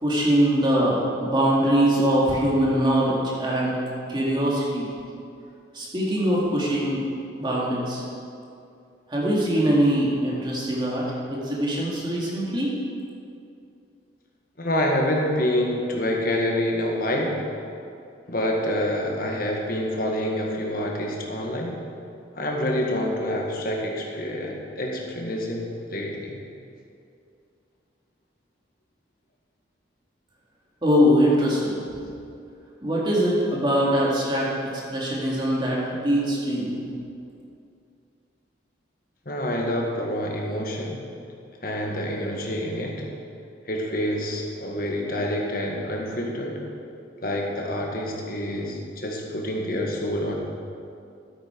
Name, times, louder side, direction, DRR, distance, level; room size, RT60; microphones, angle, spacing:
voice 1, 0.0-3.8 4.1-4.9 5.7-7.0 7.4-8.0 9.1-12.7 30.8-31.9 32.8-36.8, equal, 25° right, -5 dB, 2.3 m, -22 dB
voice 2, 14.6-17.4 18.3-21.8 22.3-26.4 39.2-41.1 41.6-43.1 43.7-46.7 47.2-50.4, left 1 dB, 50° left, 0 dB, 1.7 m, -27 dB
13.0 x 8.8 x 4.6 m, 2.5 s
head